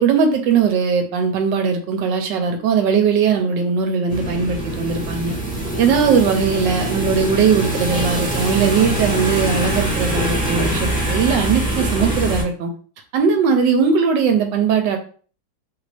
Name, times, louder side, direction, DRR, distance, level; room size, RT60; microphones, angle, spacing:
voice 1, 0.0-5.4 5.8-12.7 13.1-15.0, right 6 dB, 75° right, 5 dB, 1.2 m, -19 dB
sound 1, 4.1-12.4, right 1 dB, 5° left, 0.7 m, -23 dB
3.3 x 2.5 x 3.2 m, 0.42 s
omnidirectional pair, 2.1 m